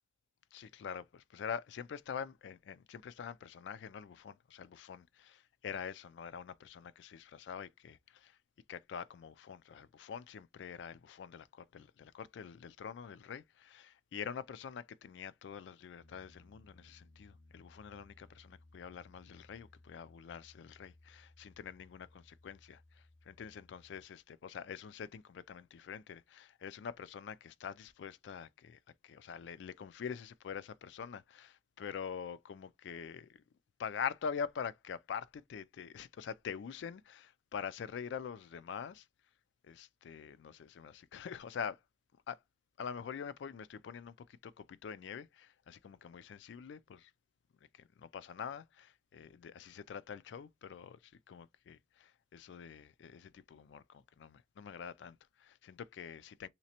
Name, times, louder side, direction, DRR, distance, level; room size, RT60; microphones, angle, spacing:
voice 1, 0.5-8.4 8.7-33.4 33.8-39.1 39.6-41.8 42.3-42.4 42.8-47.1 47.7-56.5, left 7 dB, 80° left, 0.3 m, -45 dB
Piano, 16.0-24.0, left 2 dB, 35° left, 0.6 m, -62 dB
3.3 x 2.9 x 2.8 m
head